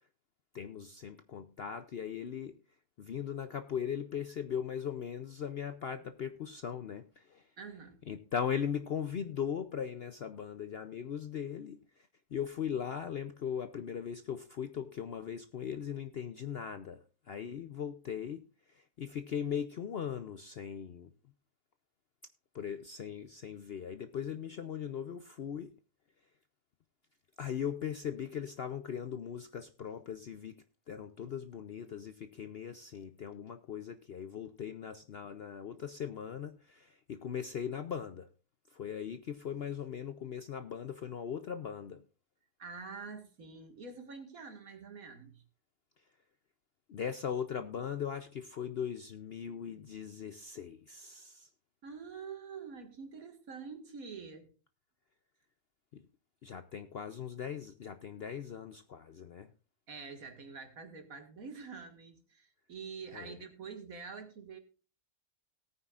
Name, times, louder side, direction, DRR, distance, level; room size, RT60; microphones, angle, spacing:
voice 1, 0.5-2.6 3.0-7.5 8.1-21.1 22.5-25.7 27.4-30.6 30.9-38.3 38.7-42.0 46.9-51.5 55.9-56.0 56.4-59.5 63.1-63.4, left 8 dB, 60° left, 0.6 m, -39 dB
voice 2, 7.6-8.0 42.6-45.4 51.8-54.5 59.9-64.6, right 5 dB, 65° right, 2.2 m, -46 dB
18.0 x 9.3 x 2.4 m
omnidirectional pair, 1.6 m